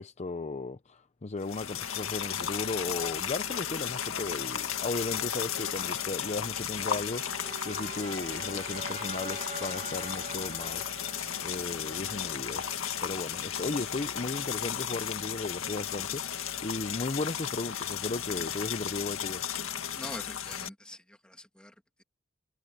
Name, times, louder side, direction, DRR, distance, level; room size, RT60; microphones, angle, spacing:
voice 1, 0.0-10.9 11.4-12.8 13.0-19.4, left 3 dB, 35° left, 0.6 m, -36 dB
sound 1, 1.4-20.7, left 9 dB, 90° left, 1.9 m, -34 dB
sound 2, 6.5-13.5, right 3 dB, 35° right, 1.3 m, -45 dB
voice 2, 19.9-22.0, left 1 dB, 5° left, 2.6 m, -45 dB
head